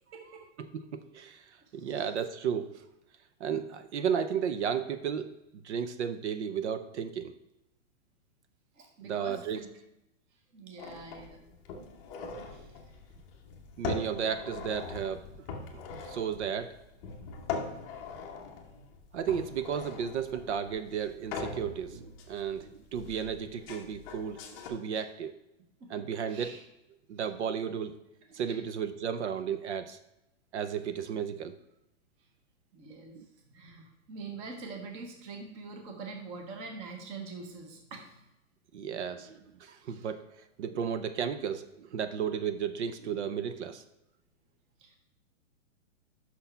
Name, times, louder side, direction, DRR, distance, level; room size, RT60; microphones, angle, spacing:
voice 1, 0.6-2.8 3.4-5.3 5.6-7.3 9.0-9.6 13.8-15.3 16.0-16.8 19.1-25.3 25.9-26.6 27.1-28.0 28.3-30.0 30.5-31.5 33.1-33.3 38.7-40.2 40.6-43.8, right 7 dB, 60° right, 11 dB, 0.7 m, -34 dB
voice 2, 8.8-9.7 10.5-11.5 12.4-12.7 25.8-26.0 26.3-26.6 28.5-28.6 32.7-33.1 33.5-38.1 39.8-39.9 44.8-45.0, right 4 dB, 15° right, 3 dB, 0.7 m, -44 dB
sound 1, 10.8-24.7, left 5 dB, 20° left, 0.7 m, -42 dB
6.1 x 5.9 x 5.6 m, 0.89 s
hypercardioid pair, 170°, 39 cm